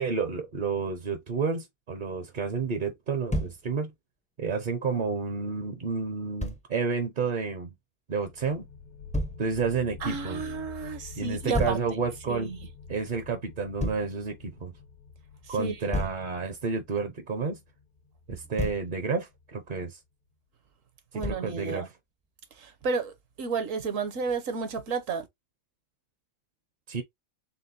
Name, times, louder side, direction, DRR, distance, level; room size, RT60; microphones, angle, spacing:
voice 1, 0.0-3.9 4.4-7.7 8.1-8.7 9.4-10.4 11.2-12.5 12.9-14.7 15.5-17.6 18.3-20.0 21.1-21.9 26.9-27.0, right 5 dB, 45° right, 0.7 m, -30 dB
Thump thud, 3.3-3.6 6.4-6.6 9.1-9.4 11.5-11.9 13.8-14.1 15.9-16.3 18.3-18.9 21.2-21.5, equal, 10° left, 0.3 m, -30 dB
sound 1, 8.2-19.6, left 5 dB, 85° left, 1.6 m, -47 dB
voice 2, 10.0-11.8 12.3-12.6 15.5-15.9 21.1-21.9 22.5-25.3, right 5 dB, 65° right, 1.2 m, -32 dB
4.3 x 3.5 x 2.6 m
omnidirectional pair, 1.5 m